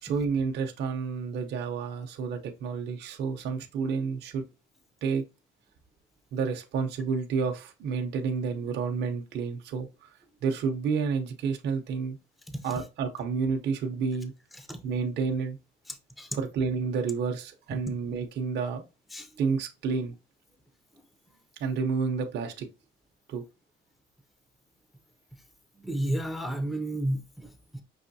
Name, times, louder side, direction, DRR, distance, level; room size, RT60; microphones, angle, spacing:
voice 1, 0.0-4.4 5.0-5.2 6.3-10.1 10.4-12.2 12.6-14.3 14.8-15.6 16.3-18.8 19.4-20.1 21.6-22.7 23.3-23.4, right 5 dB, 55° right, 0.7 m, -30 dB
voice 2, 15.9-16.3 19.1-19.3 25.8-27.8, right 1 dB, ahead, 0.5 m, -32 dB
5.6 x 3.0 x 2.7 m
cardioid pair, 175°, 21 cm